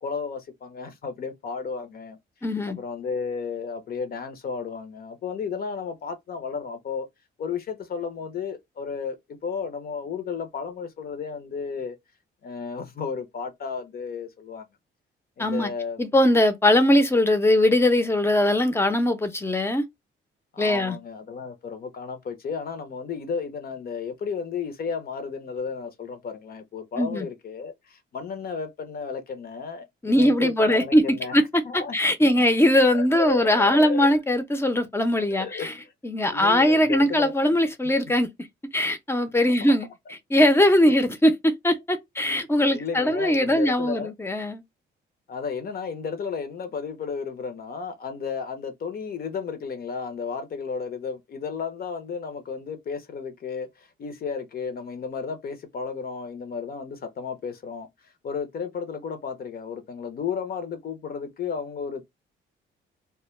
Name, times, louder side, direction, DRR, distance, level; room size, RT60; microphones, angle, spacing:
voice 1, 0.0-2.2 2.7-7.1 7.4-12.0 12.4-14.7 15.4-16.0 20.5-32.4 32.9-34.1 35.2-35.9 36.2-37.3 39.4-39.5 40.9-41.0 42.7-44.1 45.3-62.0, left 5 dB, 50° left, 0.6 m, -33 dB
voice 2, 2.4-2.8 15.4-15.7 16.0-19.8 20.6-21.0 27.0-27.3 30.0-31.4 31.7-35.7 36.0-38.3 38.7-39.9 40.3-44.6, left 1 dB, 10° left, 0.6 m, -21 dB
2.2 x 2.1 x 3.0 m
cardioid pair, 90°, 20 cm